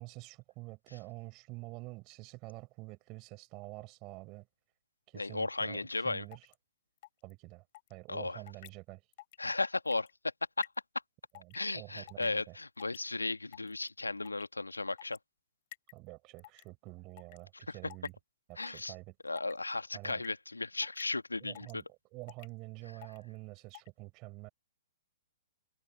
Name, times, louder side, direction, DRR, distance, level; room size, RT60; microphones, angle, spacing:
voice 1, 0.0-4.5 5.1-6.5 7.2-7.6 7.9-9.0 11.3-12.6 15.9-18.2 18.5-19.1 19.9-20.2 21.4-24.5, right 24 dB, 30° right, 4.4 m, -48 dB
voice 2, 5.1-6.3 8.1-8.4 9.4-10.1 10.6-10.7 11.5-15.2 17.7-17.8 18.6-18.9 19.2-21.8, left 3 dB, 80° left, 1.9 m, -35 dB
sound 1, 6.3-6.5 7.0-7.3 7.7-7.9 8.5-8.7 9.1-9.4 9.6-10.1 10.6-10.8 11.3-11.6 12.0-12.4 12.8-13.0 13.5-13.9 14.3-14.5 15.0-15.2 15.7-16.0 16.4-16.7 17.2-17.4 17.9-18.1 18.6-18.9 19.4-19.6 20.0-20.3 20.8-21.0 21.6-21.8 22.3-22.5 23.0-23.2 23.7-23.9, left 18 dB, 40° left, 3.1 m, -50 dB
figure-of-eight pair, 115°, 0 cm